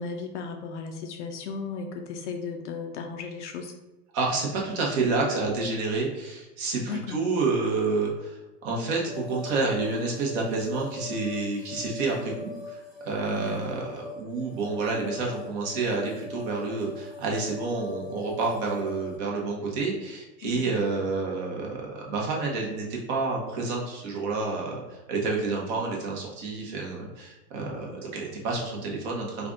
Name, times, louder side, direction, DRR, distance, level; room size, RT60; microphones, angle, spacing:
voice 1, 0.0-3.7 6.8-7.2 13.3-13.8 20.4-20.7 27.9-28.2, left 5 dB, 50° left, 4 dB, 0.5 m, -36 dB
voice 2, 4.1-29.5, right 3 dB, 40° right, -2 dB, 1.1 m, -29 dB
sound 1, 9.1-19.2, left 3 dB, ahead, 1.0 m, -41 dB
3.3 x 2.5 x 3.8 m, 1.0 s
hypercardioid pair, 125°, 50 cm